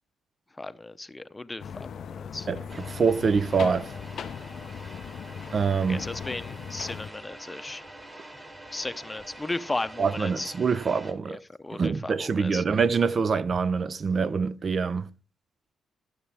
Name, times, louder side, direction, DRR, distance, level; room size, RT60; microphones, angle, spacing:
voice 1, 0.6-2.5 5.9-7.8 8.7-10.5 11.3-12.6, left 2 dB, 15° left, 0.7 m, -35 dB
sound 1, 1.6-7.1, left 7 dB, 60° left, 0.4 m, -38 dB
voice 2, 2.5-3.9 5.5-6.0 10.0-11.4 11.7-15.0, right 5 dB, 40° right, 0.4 m, -25 dB
sound 2, 2.7-11.1, right 1 dB, 25° right, 2.4 m, -46 dB
13.5 x 7.5 x 3.4 m
cardioid pair, 90°, 0 cm